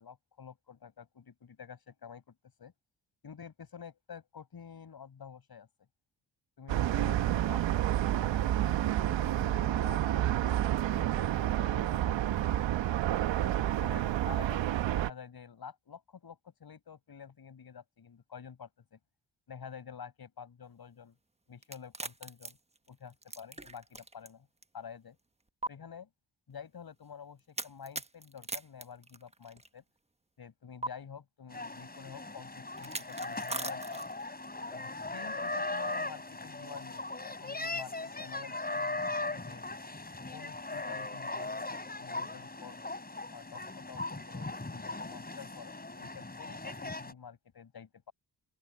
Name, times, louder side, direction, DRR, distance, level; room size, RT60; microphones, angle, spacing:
voice 1, 0.0-2.7 3.2-5.7 6.6-10.6 10.9-12.7 13.3-14.6 14.9-19.0 19.5-21.2 21.5-22.6 22.9-24.5 24.7-25.2 25.7-26.1 26.5-29.8 30.4-34.0 34.7-39.6 40.3-42.8 43.3-48.1, left 7 dB, 55° left, 6.8 m, -49 dB
sound 1, 6.7-15.1, right 12 dB, 85° right, 1.2 m, -29 dB
sound 2, 21.6-24.3 24.6-24.7 25.6-25.7 27.6-29.7 30.8-30.9 32.8-34.3, right 2 dB, 15° right, 1.3 m, -40 dB
sound 3, 31.5-47.1, left 2 dB, 20° left, 5.2 m, -39 dB
open air
cardioid pair, 60°, 43 cm